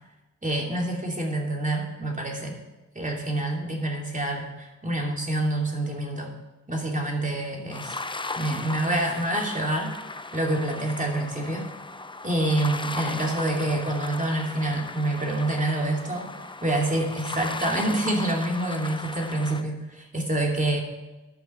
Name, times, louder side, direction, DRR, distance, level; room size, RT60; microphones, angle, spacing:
voice 1, 0.4-2.6 2.9-6.4 6.7-8.0 8.4-9.9 10.3-11.7 12.2-16.3 16.6-20.8, right 1 dB, 25° right, 0 dB, 2.9 m, -27 dB
sound 1, 7.7-19.6, left 3 dB, 15° left, 0.6 m, -36 dB
12.5 x 5.7 x 5.8 m, 1.0 s
supercardioid pair, 45°, 32 cm